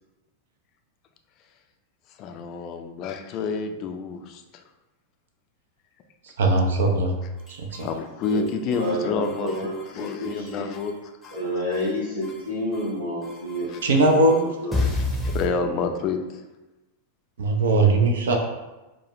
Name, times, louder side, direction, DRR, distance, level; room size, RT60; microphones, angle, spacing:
voice 1, 2.2-4.6 7.8-9.7 9.9-10.9 11.2-11.4 13.7-13.9 14.8-16.2, left 4 dB, 40° left, 5 dB, 0.4 m, -29 dB
voice 2, 6.2-7.1 7.5-7.9 13.8-14.5 17.4-18.4, right 2 dB, 60° right, 3 dB, 0.5 m, -20 dB
sound 1, 7.4-7.9 8.2-8.9 9.2-10.9 11.2-11.9 12.2-12.9 13.2-15.5, left 2 dB, ahead, 0.8 m, -31 dB
voice 3, 8.3-10.7 11.3-14.8, left 1 dB, 80° right, -9 dB, 1.1 m, -30 dB
4.5 x 2.2 x 2.9 m, 1.1 s
figure-of-eight pair, 90°, 0 cm